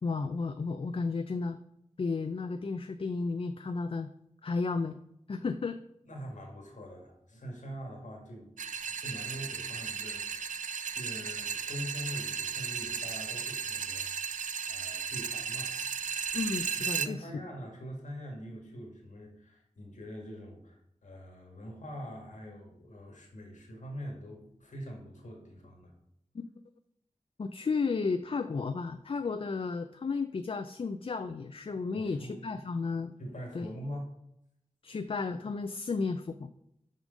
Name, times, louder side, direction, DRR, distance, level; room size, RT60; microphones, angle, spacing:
voice 1, 0.0-1.6 2.0-4.1 4.4-5.0 5.3-5.8 16.3-17.3 26.3-26.4 27.4-33.1 33.5-33.7 34.8-36.5, left 4 dB, 45° left, 9 dB, 0.4 m, -33 dB
voice 2, 6.1-14.3 14.7-15.7 16.8-25.9 32.0-32.6 33.2-34.1, equal, 75° left, 1 dB, 1.9 m, -44 dB
sound 1, 8.6-17.1, right 6 dB, 90° right, 0.4 m, -35 dB
6.2 x 5.2 x 5.2 m, 0.77 s
wide cardioid pair, 75°, 13 cm